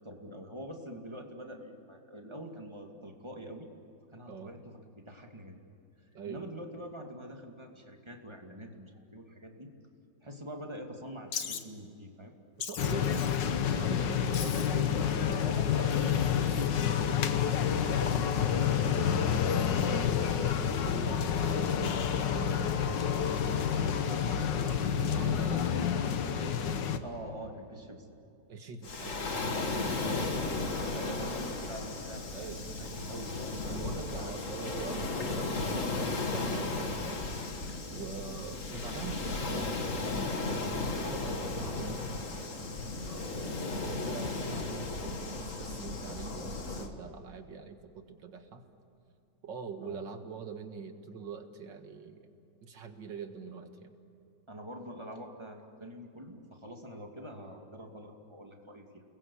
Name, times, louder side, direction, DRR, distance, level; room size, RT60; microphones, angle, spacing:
voice 1, 0.0-3.7 4.1-5.6 6.2-9.7 10.2-12.3 15.4-18.0 18.3-19.8 27.0-28.1 30.0-30.5 30.9-33.6 33.9-34.3 34.9-35.0 37.9-38.2 41.7-41.9 43.2-43.5 49.8-50.0 54.5-59.0, equal, 15° right, 2 dB, 2.5 m, -45 dB
voice 2, 6.1-6.5 12.6-13.3 13.7-15.4 18.9-19.2 20.1-26.8 28.5-30.0 31.0-31.3 32.3-32.7 33.6-37.2 37.9-42.1 43.0-43.6 43.9-48.6 49.4-52.3 52.6-53.9, right 5 dB, 80° right, 6 dB, 2.4 m, -44 dB
Wild animals, 11.3-11.6 12.6-13.5 14.3-14.8 15.9-16.7, left 7 dB, 60° left, 1.8 m, -40 dB
sound 1, 12.8-27.0, left 8 dB, 80° left, 1.8 m, -29 dB
Waves surf, 28.8-46.9, left 3 dB, 45° left, 2.1 m, -35 dB
30.0 x 21.0 x 8.6 m, 2.7 s
omnidirectional pair, 1.9 m